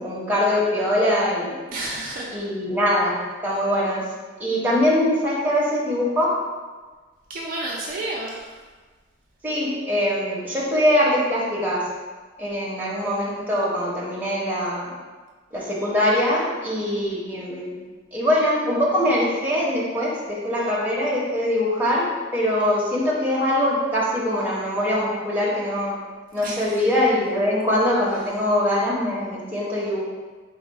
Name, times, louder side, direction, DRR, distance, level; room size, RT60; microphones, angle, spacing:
voice 1, 0.0-1.6 2.3-3.1 3.4-4.0 4.4-6.3 9.4-11.8 12.4-14.9 15.5-17.8 18.1-22.0 22.3-25.9 26.3-30.0, left 1 dB, 10° right, -7 dB, 0.9 m, -22 dB
voice 2, 1.7-2.3 7.3-8.5 26.4-26.8, right 2 dB, 50° right, -4 dB, 0.5 m, -31 dB
3.9 x 2.3 x 4.5 m, 1.4 s
head